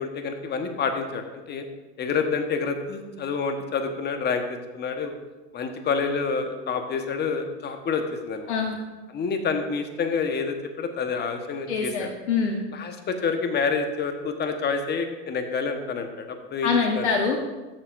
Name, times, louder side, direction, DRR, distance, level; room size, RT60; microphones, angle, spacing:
voice 1, 0.0-1.6 2.0-5.1 5.5-8.5 9.1-12.1 12.7-17.1, left 5 dB, 30° left, 6 dB, 1.3 m, -28 dB
voice 2, 8.5-8.8 11.7-12.6 16.6-17.4, left 5 dB, 85° left, 2 dB, 1.0 m, -24 dB
13.5 x 7.0 x 2.6 m, 1.2 s
hypercardioid pair, 100°, 33 cm